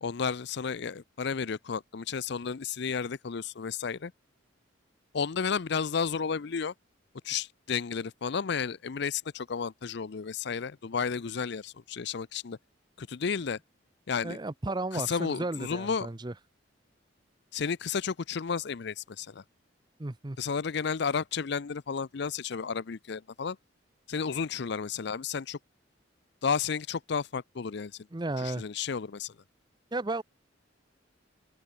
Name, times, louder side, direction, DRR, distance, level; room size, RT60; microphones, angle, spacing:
voice 1, 0.0-4.1 5.1-6.7 7.2-12.6 13.0-13.6 14.1-14.4 14.9-16.1 17.5-19.4 20.4-23.6 24.1-25.6 26.4-28.1 28.4-29.3, left 6 dB, 60° left, 0.5 m, -32 dB
voice 2, 14.2-16.3 20.0-20.4 28.1-28.6 29.9-30.2, right 2 dB, 20° right, 0.7 m, -33 dB
open air
head